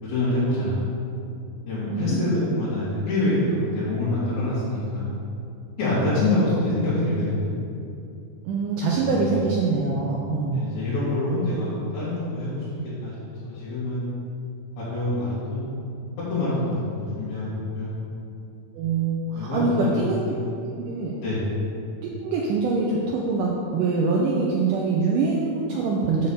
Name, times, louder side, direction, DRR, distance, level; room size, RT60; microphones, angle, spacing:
voice 1, 0.0-0.8 1.7-5.1 5.8-7.5 8.9-9.5 10.5-12.6 13.0-13.2 13.4-14.1 14.8-15.7 16.3-17.9 19.3-20.0 20.3-20.5 21.2-21.4, left 1 dB, 70° left, -13 dB, 3.8 m, -26 dB
voice 2, 1.9-2.4 8.5-10.6 18.8-20.2 20.7-21.1 22.2-26.3, right 4 dB, 90° right, -2 dB, 1.9 m, -24 dB
8.0 x 4.1 x 6.9 m, 2.6 s
omnidirectional pair, 4.5 m